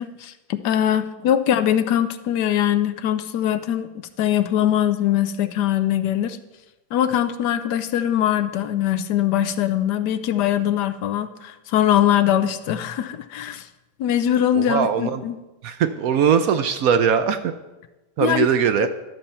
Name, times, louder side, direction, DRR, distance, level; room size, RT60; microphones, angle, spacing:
voice 1, 0.0-3.9 4.2-6.4 6.9-13.7 14.0-15.4 18.2-18.5 18.8-18.9, left 11 dB, 75° left, 10 dB, 1.2 m, -22 dB
voice 2, 14.6-15.3 15.6-17.5 18.2-18.9, right 7 dB, 70° right, 9 dB, 0.9 m, -20 dB
12.0 x 6.8 x 4.3 m, 1.0 s
omnidirectional pair, 1.8 m